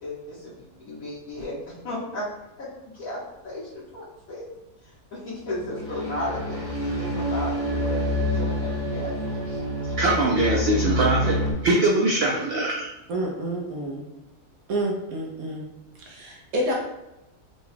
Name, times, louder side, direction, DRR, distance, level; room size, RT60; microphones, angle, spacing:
voice 1, 0.0-1.6 1.8-2.3 2.6-2.7 2.9-4.4 5.1-6.6 6.9-9.6, left 1 dB, 70° left, -11 dB, 1.6 m, -34 dB
sound 1, 5.5-11.5, left 1 dB, 15° right, 0.7 m, -27 dB
voice 2, 10.0-12.9, right 2 dB, 85° right, -1 dB, 0.5 m, -22 dB
voice 3, 13.1-14.0 14.7-15.7 16.1-16.7, right 1 dB, 70° right, -1 dB, 1.1 m, -28 dB
4.0 x 2.3 x 3.2 m, 0.91 s
omnidirectional pair, 1.6 m